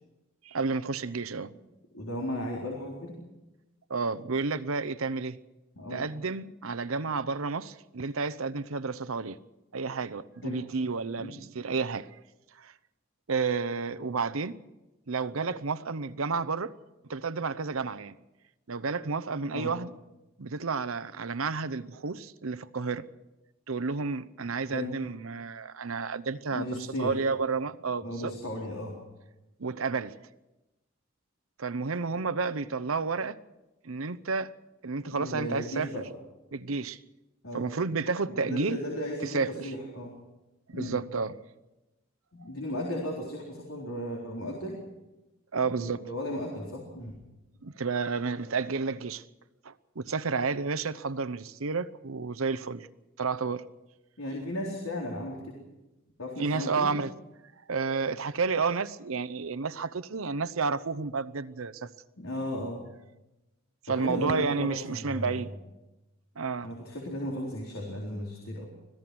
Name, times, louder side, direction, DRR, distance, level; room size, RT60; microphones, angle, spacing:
voice 1, 0.4-1.5 3.9-5.4 5.9-9.4 9.7-12.1 12.6-12.7 13.3-14.6 15.1-16.7 17.1-18.1 18.7-19.9 20.4-23.1 23.7-26.7 27.0-28.3 29.6-30.1 31.6-33.4 33.8-34.5 34.8-35.9 36.5-37.0 37.5-38.8 39.2-39.5 40.7-41.3 45.5-46.0 47.6-49.2 49.6-52.9 53.2-53.6 56.4-57.1 57.7-61.9 63.9-65.5 66.4-66.7, right 4 dB, 75° right, 15 dB, 0.8 m, -31 dB
voice 2, 1.9-3.2 5.8-6.1 10.4-10.6 11.2-11.4 19.5-19.7 24.7-24.9 26.5-27.2 28.0-29.0 35.1-36.1 37.4-37.7 38.3-40.1 40.7-41.0 42.3-44.8 45.6-47.2 54.2-55.6 56.2-56.9 62.2-62.8 63.9-65.4 66.6-68.7, left 1 dB, 80° left, -1 dB, 4.0 m, -35 dB
25.5 x 16.5 x 6.2 m, 1.0 s
head